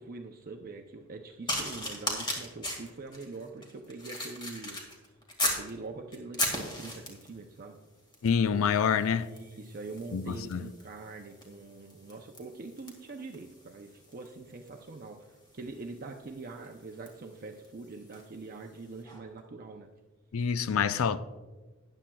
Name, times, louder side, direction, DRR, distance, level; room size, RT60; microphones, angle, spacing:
voice 1, 0.0-5.0 5.4-7.8 9.2-19.9, right 3 dB, 45° right, 0.6 m, -44 dB
sound 1, 1.5-5.7 6.1-7.4 8.1-8.4 8.7-18.3 19.0-19.2, left 1 dB, 20° left, 1.9 m, -38 dB
voice 2, 8.2-9.3 10.1-10.6 20.3-21.2, left 7 dB, 70° left, 0.4 m, -27 dB
13.5 x 9.9 x 2.3 m
head